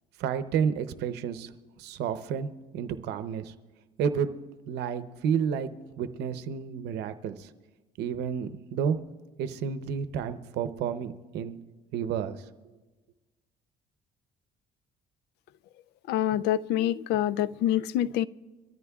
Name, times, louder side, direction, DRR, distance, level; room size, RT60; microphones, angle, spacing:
voice 1, 0.2-1.5 1.8-3.5 4.0-4.3 4.7-5.7 6.0-7.5 8.0-9.0 9.4-11.6 11.9-12.4, right 7 dB, 80° right, 0.8 m, -30 dB
voice 2, 16.1-18.3, left 12 dB, 80° left, 0.4 m, -26 dB
24.5 x 13.5 x 2.4 m
cardioid pair, 110°, 17 cm